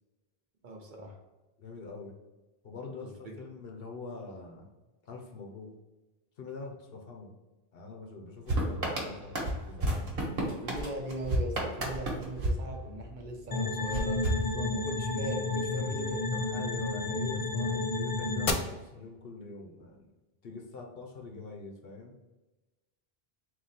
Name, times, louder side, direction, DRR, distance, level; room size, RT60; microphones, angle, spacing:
voice 1, 0.6-1.2 3.0-3.4 10.6-14.3 14.7-16.2, right 1 dB, 55° right, 2 dB, 0.8 m, -40 dB
voice 2, 1.6-2.2 2.6-4.7 5.0-5.7 6.4-7.3 7.7-10.2 14.3-14.8 15.8-15.9 16.3-20.1 20.4-22.2, left 4 dB, 70° left, 1 dB, 1.0 m, -44 dB
sound 1, 8.5-13.3 13.9-15.1, right 1 dB, 70° right, 1.3 m, -33 dB
sound 2, 13.5-18.5, left 3 dB, 45° left, 0.5 m, -31 dB
3.8 x 2.7 x 4.1 m, 1.1 s
omnidirectional pair, 1.0 m